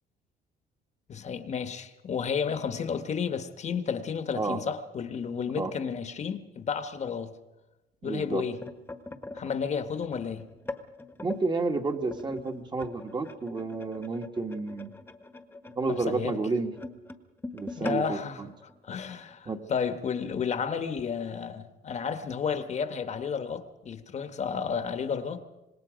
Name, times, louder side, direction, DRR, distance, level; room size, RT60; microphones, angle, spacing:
voice 1, 1.1-7.3 8.0-8.6 9.3-10.4 15.9-16.4 17.8-18.4 18.9-25.4, left 6 dB, 45° left, 1.3 m, -32 dB
voice 2, 8.0-8.4 11.2-14.9 15.7-16.7 17.5-18.5 19.4-19.6, right 3 dB, 25° right, 1.7 m, -31 dB
sound 1, 8.4-11.4 12.1-19.4 19.8-20.0 20.2-20.5 21.3-21.4, left 2 dB, 10° left, 1.3 m, -42 dB
26.0 x 20.0 x 5.2 m
cardioid pair, 110°, 17 cm